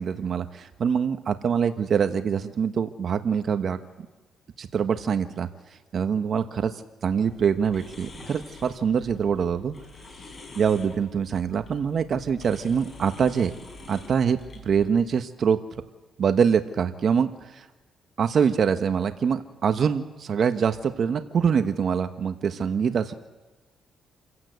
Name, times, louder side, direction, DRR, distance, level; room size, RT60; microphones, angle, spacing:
voice 1, 0.0-3.8 4.6-5.5 5.9-6.7 7.0-9.7 10.5-13.5 13.9-14.4 14.6-15.6 16.2-17.6 18.2-23.1, right 7 dB, 55° right, 8 dB, 1.2 m, -24 dB
sound 1, 7.1-14.8, left 2 dB, 40° left, 5.8 m, -46 dB
27.0 x 16.0 x 8.1 m, 1.2 s
cardioid pair, 90°, 0 cm